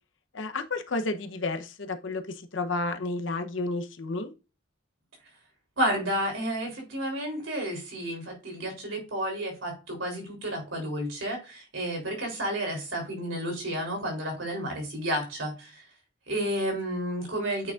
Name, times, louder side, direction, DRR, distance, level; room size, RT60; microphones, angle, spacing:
voice 1, 0.3-2.2 2.5-4.3, left 2 dB, 70° left, 0.8 m, -31 dB
voice 2, 5.8-15.8 16.3-17.7, right 1 dB, 80° right, 3.5 m, -31 dB
8.8 x 5.9 x 2.5 m
head